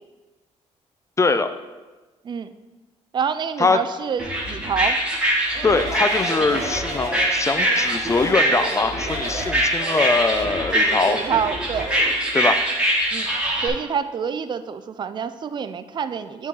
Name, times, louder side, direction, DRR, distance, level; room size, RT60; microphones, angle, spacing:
voice 1, 1.2-1.5 3.6-3.8 5.6-11.2 12.3-12.6, left 3 dB, 25° left, 10 dB, 0.4 m, -22 dB
voice 2, 3.1-5.0 11.1-11.9 13.1-13.3 13.6-16.5, right 7 dB, 40° right, 12 dB, 0.4 m, -27 dB
sound 1, 4.2-13.7, right 1 dB, 10° right, 1.6 m, -23 dB
Speech, 5.5-12.2, right 2 dB, 90° right, 1.3 m, -33 dB
8.3 x 3.8 x 4.7 m, 1.2 s
cardioid pair, 95°, 12 cm